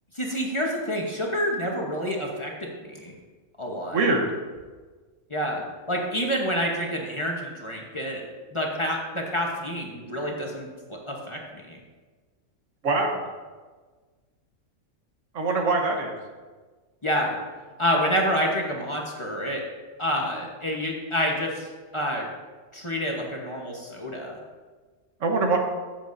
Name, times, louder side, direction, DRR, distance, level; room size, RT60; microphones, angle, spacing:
voice 1, 0.1-3.1 3.6-4.0 5.3-8.2 8.5-11.8 17.0-17.4 17.8-19.6 20.0-21.7 21.9-22.3 22.7-24.4, equal, 25° left, -1 dB, 1.0 m, -28 dB
voice 2, 3.9-4.4 12.8-13.2 15.3-16.2 25.2-25.6, right 3 dB, 75° right, 3 dB, 1.5 m, -23 dB
13.5 x 7.4 x 2.6 m, 1.4 s
omnidirectional pair, 1.3 m